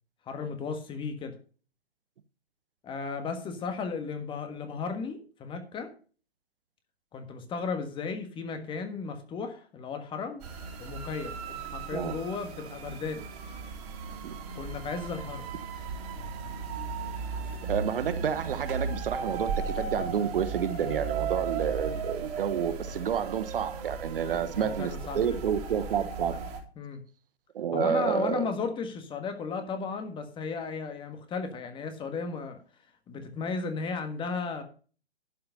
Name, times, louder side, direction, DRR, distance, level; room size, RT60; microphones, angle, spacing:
voice 1, 0.3-1.3 2.8-5.9 7.1-10.4 10.8-13.2 14.5-15.5 24.2-25.3 26.8-27.0 27.7-32.6 33.1-34.6, left 5 dB, 15° left, 1.5 m, -35 dB
sound 1, 10.4-26.6, right 5 dB, 40° right, 2.9 m, -36 dB
voice 2, 17.7-26.4 27.5-28.5, right 8 dB, 60° right, 1.0 m, -29 dB
11.5 x 5.7 x 6.7 m
figure-of-eight pair, 125°, 31 cm